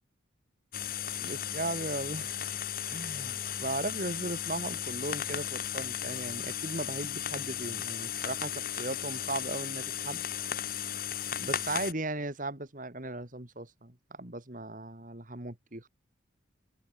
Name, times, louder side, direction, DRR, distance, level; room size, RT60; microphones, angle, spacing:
sound 1, 0.7-11.9, left 10 dB, 45° left, 2.8 m, -35 dB
voice 1, 1.2-2.5 2.9-10.2 11.4-15.9, right 2 dB, 40° right, 2.3 m, -37 dB
head